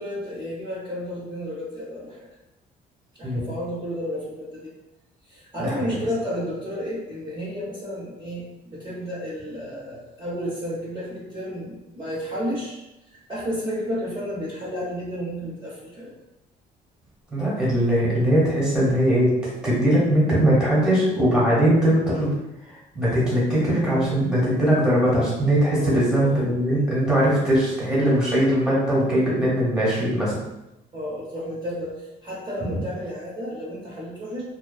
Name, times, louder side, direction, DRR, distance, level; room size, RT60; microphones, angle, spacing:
voice 1, 0.0-2.3 3.2-4.7 5.3-12.8 13.1-16.1 25.7-26.8 30.9-34.4, equal, 25° right, -9 dB, 0.8 m, -32 dB
voice 2, 5.6-5.9 17.3-22.3 22.9-30.3, right 1 dB, 5° right, -7 dB, 1.2 m, -20 dB
2.4 x 2.3 x 2.3 m, 0.93 s
cardioid pair, 110°, 17 cm